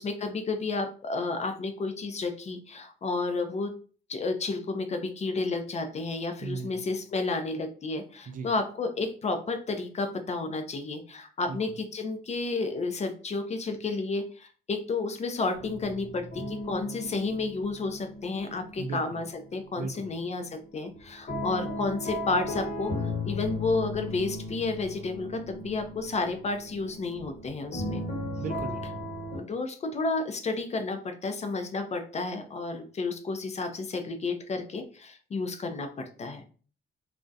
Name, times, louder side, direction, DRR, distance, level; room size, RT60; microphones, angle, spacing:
voice 1, 0.0-3.7 4.1-19.3 19.5-28.0 29.3-36.4, left 3 dB, 35° left, 7 dB, 0.4 m, -31 dB
voice 2, 6.4-6.9 8.3-8.5 11.5-11.6 18.8-19.2 19.8-20.1 28.4-29.0, right 4 dB, 40° right, 7 dB, 0.4 m, -36 dB
sound 1, 15.5-19.6 19.9-29.4, left 1 dB, 50° left, 0.8 m, -36 dB
2.3 x 2.0 x 2.6 m, 0.41 s
cardioid pair, 90°, 20 cm